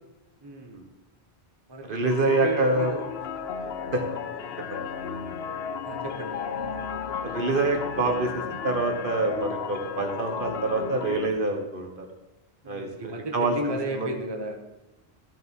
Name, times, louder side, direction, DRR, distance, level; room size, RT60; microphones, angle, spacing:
voice 1, 0.4-0.8 1.7-3.0 3.4-3.5 5.8-7.4 12.6-14.6, right 1 dB, 25° right, 3 dB, 1.1 m, -35 dB
voice 2, 1.9-2.9 3.9-4.0 4.7-4.8 7.2-8.3 8.6-12.0 12.7-14.1, right 2 dB, 55° right, 3 dB, 1.4 m, -26 dB
sound 1, 2.1-11.3, left 6 dB, 70° left, 1.0 m, -34 dB
13.5 x 6.8 x 4.6 m, 0.98 s
omnidirectional pair, 1.1 m